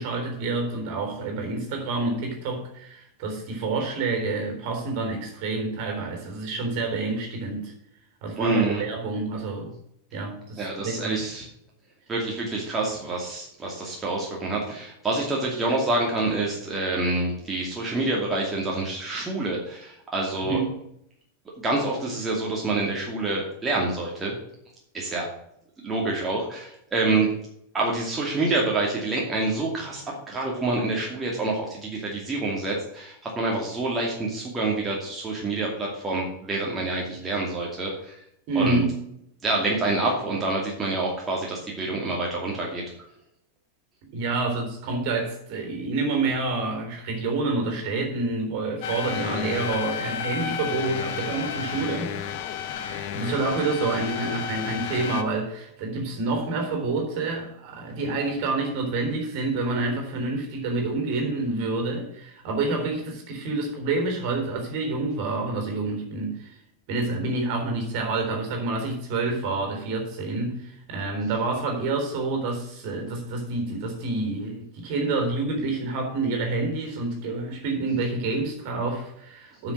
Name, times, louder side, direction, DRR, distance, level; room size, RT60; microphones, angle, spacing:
voice 1, 0.0-7.7 8.2-9.7 10.1-11.2 20.4-20.8 38.5-39.0 44.1-52.1 52.8-66.6 66.9-79.7, right 3 dB, 45° right, 3.7 m, -28 dB
voice 2, 8.4-8.8 10.6-11.4 12.1-20.6 21.6-24.3 24.9-25.3 25.8-27.3 27.7-38.1 38.5-38.8 39.4-42.8, right 2 dB, 15° right, 2.5 m, -27 dB
sound 1, 48.8-55.2, left 7 dB, 50° left, 1.0 m, -32 dB
9.6 x 6.5 x 6.1 m
figure-of-eight pair, 90°, 0 cm